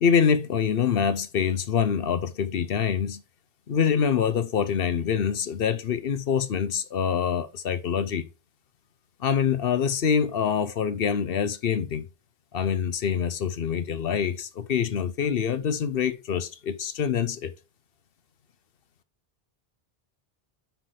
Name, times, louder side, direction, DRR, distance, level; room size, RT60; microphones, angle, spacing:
voice 1, 0.0-3.2 3.7-8.3 9.2-12.1 12.5-17.5, left 7 dB, 65° left, 0.9 m, -25 dB
5.9 x 4.5 x 6.4 m
omnidirectional pair, 1.1 m